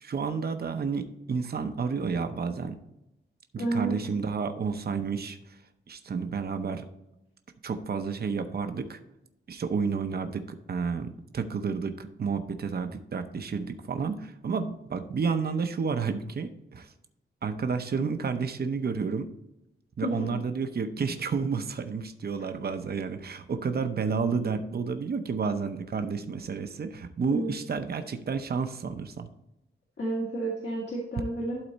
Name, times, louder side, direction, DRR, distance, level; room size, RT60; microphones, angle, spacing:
voice 1, 0.0-2.7 3.5-5.4 5.9-6.8 7.6-9.0 9.5-16.9 17.4-19.3 20.0-29.3, right 5 dB, 50° right, 8 dB, 0.7 m, -31 dB
voice 2, 3.6-4.0 20.0-20.1 27.3-27.5 30.0-31.6, right 2 dB, 60° left, -4 dB, 1.9 m, -30 dB
12.0 x 4.1 x 4.1 m, 0.88 s
wide cardioid pair, 155°, 21 cm